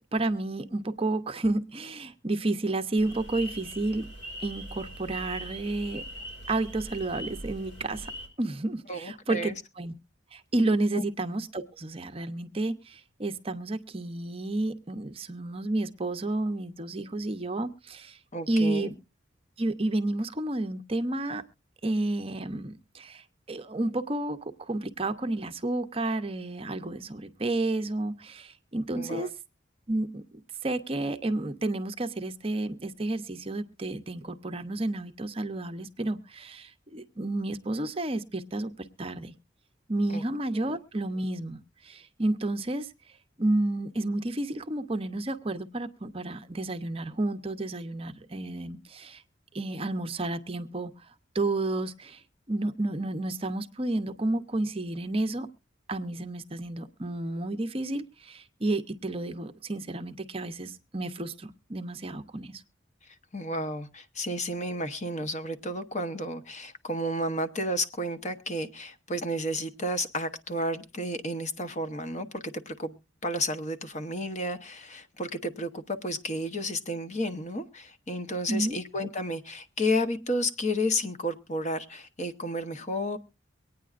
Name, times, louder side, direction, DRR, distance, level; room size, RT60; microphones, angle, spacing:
voice 1, 0.1-4.1 4.4-6.0 6.5-8.1 8.4-9.9 10.3-18.2 18.5-19.0 19.6-21.4 21.8-29.3 29.9-30.2 30.6-39.3 39.9-42.9 43.4-49.2 49.5-50.9 51.3-52.2 52.5-55.5 55.9-62.6 78.5-78.8, right 2 dB, 30° right, 0.7 m, -31 dB
sound 1, 3.0-8.3, equal, 75° left, 4.4 m, -41 dB
voice 2, 8.9-9.6 10.9-11.0 18.3-18.9 29.0-29.3 40.1-40.2 63.3-83.2, left 1 dB, 35° left, 0.9 m, -32 dB
23.5 x 9.3 x 2.4 m
head